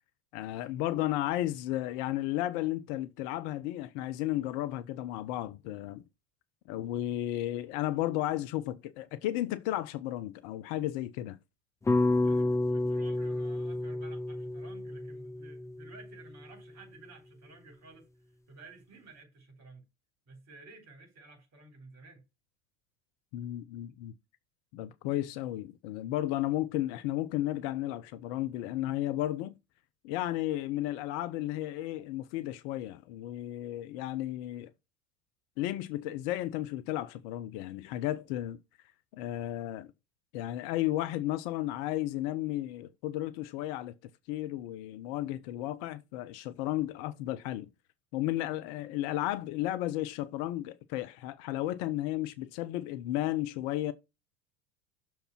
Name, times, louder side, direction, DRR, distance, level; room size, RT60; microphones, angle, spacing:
voice 1, 0.3-6.0 6.7-11.4 23.3-24.1 24.7-29.5 30.0-34.7 35.6-38.6 39.1-39.9 40.3-43.9 44.3-47.7 48.1-53.9, left 14 dB, 50° left, 0.6 m, -33 dB
sound 1, 11.9-16.1, left 2 dB, 5° left, 0.5 m, -30 dB
voice 2, 12.2-18.1 18.5-19.8 20.3-22.2, right 3 dB, 35° right, 3.8 m, -53 dB
6.6 x 4.5 x 5.7 m
hypercardioid pair, 80°, 44 cm